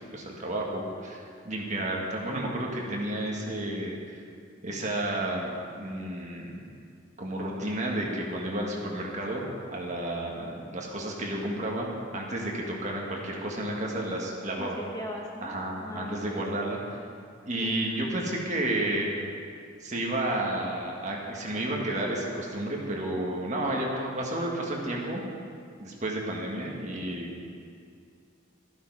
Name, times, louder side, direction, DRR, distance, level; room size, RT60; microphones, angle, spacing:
voice 1, 0.1-4.2 4.6-6.6 7.2-9.4 9.7-11.9 12.1-14.8 15.4-17.0 17.4-19.1 19.8-25.2 25.8-27.3, right 1 dB, 35° right, -2 dB, 1.7 m, -31 dB
voice 2, 14.6-15.5 15.8-16.5 17.6-17.8 23.3-23.4, equal, 20° left, -1 dB, 1.1 m, -39 dB
13.0 x 11.5 x 4.7 m, 2.3 s
head